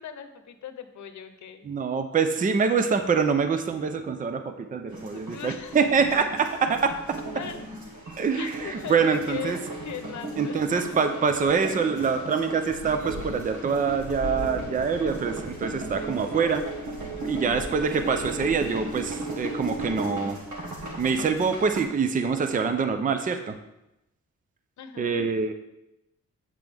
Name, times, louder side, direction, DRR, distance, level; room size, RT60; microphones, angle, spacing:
voice 1, 0.0-1.7 5.1-5.7 6.1-6.2 7.3-7.6 8.3-10.8 11.7-12.1 17.2-17.5 24.8-25.3, left 8 dB, 75° left, 9 dB, 0.8 m, -39 dB
voice 2, 1.6-7.0 8.2-9.6 10.4-16.6 17.2-20.4 21.0-23.5 25.0-25.5, right 5 dB, 30° right, 8 dB, 0.5 m, -25 dB
sound 1, 4.9-21.8, right 2 dB, 80° right, 1.6 m, -36 dB
7.8 x 7.4 x 3.5 m, 0.89 s
wide cardioid pair, 145°, 29 cm